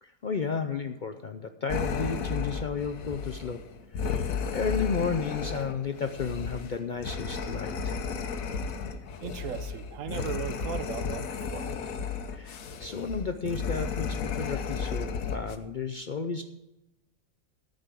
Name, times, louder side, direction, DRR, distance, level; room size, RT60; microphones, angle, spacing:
voice 1, 0.0-3.6 4.0-8.0 12.3-16.4, left 5 dB, 50° left, 7 dB, 0.6 m, -33 dB
sound 1, 1.7-15.6, left 5 dB, 85° left, 1.3 m, -33 dB
voice 2, 9.2-11.7, right 8 dB, 75° right, 11 dB, 1.1 m, -37 dB
13.5 x 5.3 x 8.1 m, 0.92 s
omnidirectional pair, 1.4 m